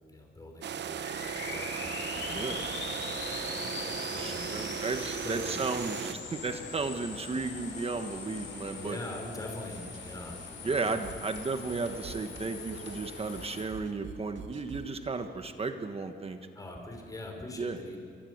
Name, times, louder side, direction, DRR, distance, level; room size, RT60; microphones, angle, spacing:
voice 1, 0.1-2.9 3.3-3.5 3.8-4.7 5.2-5.6 8.8-11.0 16.5-18.0, left 1 dB, 20° left, 2 dB, 4.6 m, -43 dB
sound 1, 0.6-6.1, right 8 dB, 65° right, 1.0 m, -37 dB
sound 2, 1.0-13.6, left 4 dB, 85° left, 8.0 m, -41 dB
voice 2, 4.2-9.0 10.6-16.4 17.6-17.8, right 3 dB, 30° right, 7 dB, 1.2 m, -34 dB
sound 3, 9.7-15.0, right 6 dB, 80° right, 2.0 m, -47 dB
29.0 x 23.5 x 8.0 m, 2.4 s
wide cardioid pair, 155°, 20 cm